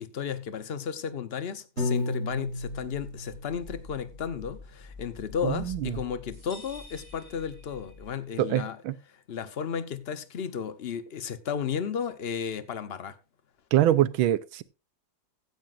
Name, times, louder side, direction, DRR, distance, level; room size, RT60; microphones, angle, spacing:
voice 1, 0.0-8.8 9.1-13.1, left 7 dB, 50° left, 0.7 m, -34 dB
Piano, 1.8-4.0, left 2 dB, 35° right, 5.3 m, -33 dB
sound 1, 2.3-8.3, left 4 dB, 10° right, 2.9 m, -47 dB
voice 2, 5.4-5.9 8.4-8.9 13.7-14.6, right 12 dB, 90° right, 1.5 m, -24 dB
sound 2, 6.3-8.2, left 1 dB, 15° left, 3.7 m, -50 dB
15.5 x 10.5 x 2.5 m
omnidirectional pair, 2.2 m